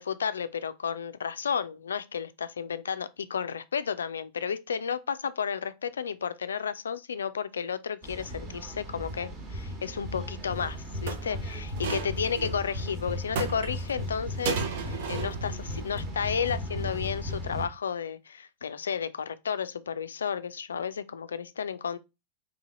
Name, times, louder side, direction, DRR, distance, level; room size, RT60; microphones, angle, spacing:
voice 1, 0.0-22.0, left 7 dB, 70° left, 0.3 m, -32 dB
sound 1, 8.0-17.7, left 1 dB, 30° right, 1.2 m, -36 dB
sound 2, 10.6-10.7 11.1-12.6 13.4-14.0 14.5-15.5 15.8-16.0, right 6 dB, 55° right, 0.7 m, -34 dB
4.0 x 2.7 x 3.7 m
figure-of-eight pair, 90°, 0 cm